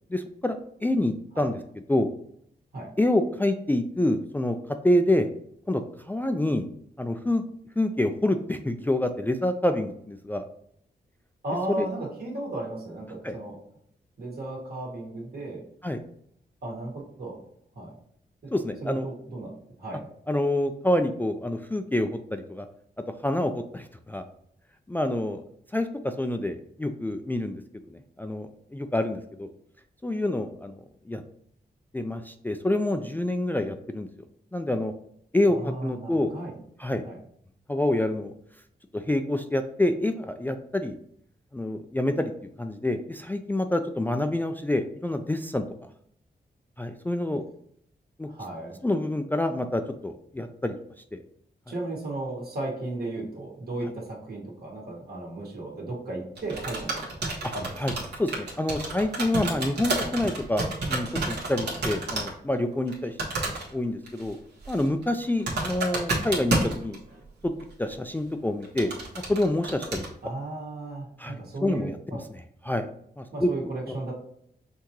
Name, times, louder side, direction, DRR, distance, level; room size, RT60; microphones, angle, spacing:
voice 1, 0.1-1.6 1.9-2.1 3.0-4.6 4.8-5.3 5.7-5.8 6.1-6.7 7.0-7.4 7.8-10.5 11.8-11.9 13.2-13.4 15.8-16.0 18.5-19.1 20.3-22.7 23.2-24.2 24.9-25.4 25.7-27.6 27.9-29.5 30.0-30.8 31.1-31.2 31.9-34.1 34.5-34.9 35.3-36.3 36.8-37.0 37.7-38.3 38.9-41.0 41.5-42.3 42.6-45.6 46.8-47.4 48.2-48.3 48.8-50.8 51.1-51.2 57.4-57.5 57.8-63.2 63.5-64.4 64.7-67.0 67.4-67.5 67.8-68.9 69.3-70.0 71.2-72.2 72.6-72.9 73.2-73.5, left 1 dB, 10° left, 6 dB, 0.3 m, -27 dB
voice 2, 11.4-13.6 14.2-15.6 16.6-16.9 17.2-17.4 17.8-17.9 18.4-18.5 18.8-19.5 19.8-20.0 35.5-36.6 37.0-37.2 48.3-48.8 51.7-57.8 70.2-72.2 73.3-74.1, right 2 dB, 60° right, -3 dB, 1.8 m, -35 dB
sound 1, 56.4-62.3 62.6-62.9 63.2-63.7 64.1-64.3 64.6-67.2 67.6-67.7 68.6-70.1, right 2 dB, 75° right, 1.5 m, -30 dB
5.7 x 2.8 x 3.0 m, 0.69 s
cardioid pair, 85°, 18 cm